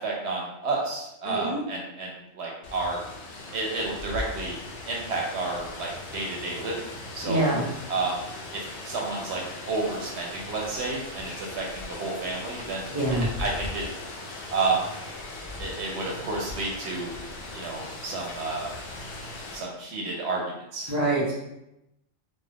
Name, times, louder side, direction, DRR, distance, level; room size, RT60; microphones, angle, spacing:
voice 1, 0.0-3.0 3.5-4.6 4.9-6.8 7.1-7.5 7.9-8.2 8.5-13.9 14.5-14.9 15.6-17.1 17.5-18.7 19.5-20.9, right 3 dB, 70° right, -1 dB, 0.8 m, -31 dB
voice 2, 1.2-1.6 7.2-7.6 12.9-13.3 20.9-21.3, right 1 dB, 15° right, -5 dB, 0.7 m, -25 dB
Rain, 2.6-19.6, left 2 dB, 60° left, 0.7 m, -39 dB
2.3 x 2.1 x 3.3 m, 0.87 s
omnidirectional pair, 1.2 m